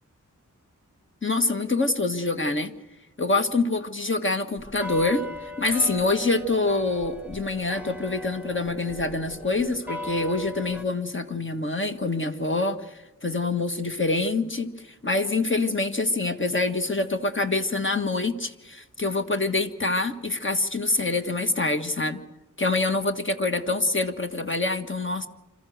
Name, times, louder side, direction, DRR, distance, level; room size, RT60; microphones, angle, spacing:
voice 1, 1.2-2.7 3.2-5.2 5.6-14.7 15.0-22.2 22.6-25.3, left 2 dB, 40° left, 7 dB, 1.6 m, -25 dB
sound 1, 4.6-10.8, left 1 dB, 5° right, 1.2 m, -38 dB
27.0 x 14.0 x 8.0 m, 1.0 s
wide cardioid pair, 75°, 32 cm